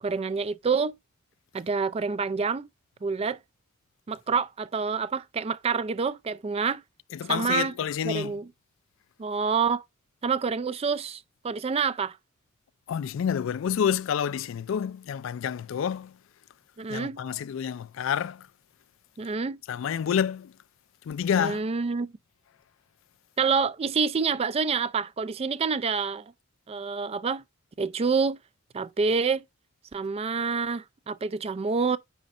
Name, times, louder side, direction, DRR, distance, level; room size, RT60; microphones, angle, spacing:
voice 1, 0.0-1.0 1.5-2.7 3.0-3.4 4.1-6.8 7.3-7.7 8.0-8.5 9.2-9.8 10.2-12.2 16.8-17.2 19.2-19.6 21.4-22.1 23.4-26.3 26.7-27.4 27.8-28.4 28.7-29.4 29.9-32.0, right 5 dB, 30° right, 0.3 m, -27 dB
voice 2, 7.1-8.4 12.9-16.2 16.9-18.5 19.7-20.5 21.1-21.6, left 8 dB, 65° left, 0.3 m, -28 dB
9.3 x 5.1 x 2.5 m
head